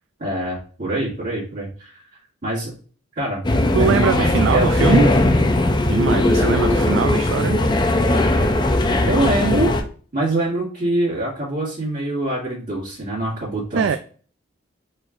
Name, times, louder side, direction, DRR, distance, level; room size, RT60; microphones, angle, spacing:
voice 1, 0.2-1.9 2.4-2.7 3.2-3.4 3.8-5.3 9.1-9.7 10.1-14.0, right 1 dB, 50° right, -11 dB, 2.2 m, -24 dB
sound 1, 3.4-9.8, left 1 dB, 25° left, 0.5 m, -18 dB
voice 2, 3.7-5.1 5.9-7.6 13.7-14.0, right 6 dB, 70° right, 8 dB, 0.3 m, -21 dB
4.4 x 4.4 x 2.5 m, 0.42 s
head